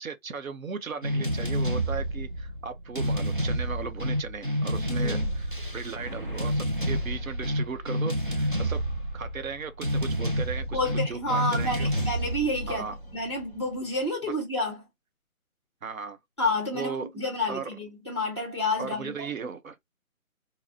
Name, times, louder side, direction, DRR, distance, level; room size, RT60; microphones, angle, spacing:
voice 1, 0.0-5.5 5.7-8.8 9.1-10.8 11.1-11.9 12.7-12.9 15.8-16.2 16.7-17.1 17.5-17.7 18.8-19.8, right 5 dB, 70° right, 0.8 m, -36 dB
sound 1, 1.0-13.8, equal, 40° right, 0.4 m, -29 dB
voice 2, 4.8-5.3 10.7-12.8 13.1-14.8 16.4-19.1, left 2 dB, 20° left, 0.9 m, -29 dB
4.1 x 2.1 x 2.7 m
hypercardioid pair, 170°, 43 cm